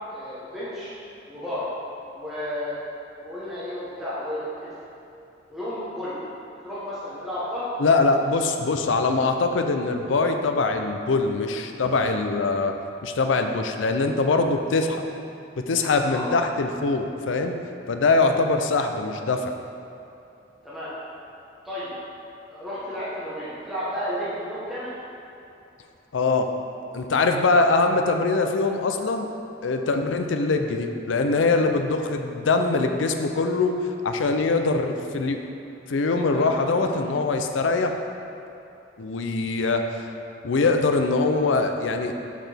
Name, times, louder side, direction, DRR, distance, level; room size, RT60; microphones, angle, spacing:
voice 1, 0.1-0.9 1.3-1.7 2.1-2.7 3.2-4.7 5.5-6.2 6.6-7.7 16.0-16.3 20.6-20.9 21.6-21.9 22.5-24.9 36.3-36.9, left 1 dB, ahead, -12 dB, 1.1 m, -32 dB
voice 2, 7.8-15.0 15.7-17.6 17.9-19.6 26.1-26.5 26.9-29.3 29.6-35.4 35.9-38.0 39.0-40.1 40.4-42.1, left 3 dB, 85° left, 5 dB, 0.5 m, -23 dB
6.4 x 6.0 x 3.4 m, 2.8 s
head